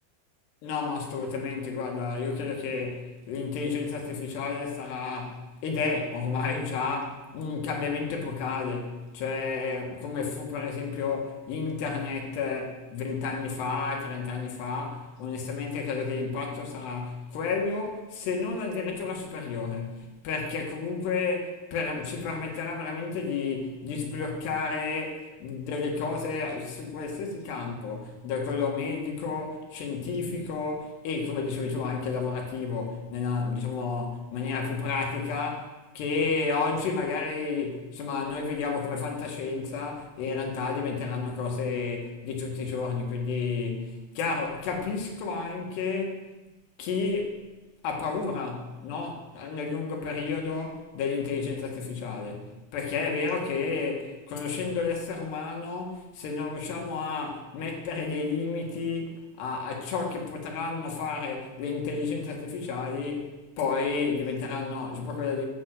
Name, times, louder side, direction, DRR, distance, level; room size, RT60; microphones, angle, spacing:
voice 1, 0.6-46.3 46.8-47.5 47.8-65.5, left 4 dB, 80° left, 1 dB, 3.9 m, -31 dB
11.5 x 7.9 x 7.8 m, 1.1 s
omnidirectional pair, 4.8 m